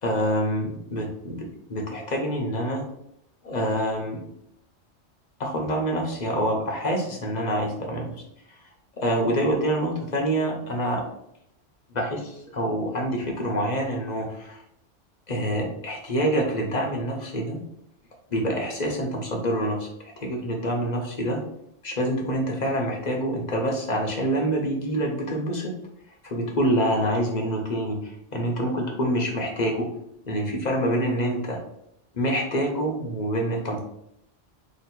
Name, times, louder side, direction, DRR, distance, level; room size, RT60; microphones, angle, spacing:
voice 1, 0.0-2.8 3.4-4.2 5.4-8.1 9.0-11.0 11.9-14.6 15.3-17.6 18.3-19.9 20.2-21.4 21.8-25.8 26.2-29.9 30.3-31.6 32.1-33.8, equal, 40° left, 1 dB, 0.9 m, -26 dB
2.9 x 2.9 x 4.4 m, 0.76 s
omnidirectional pair, 1.2 m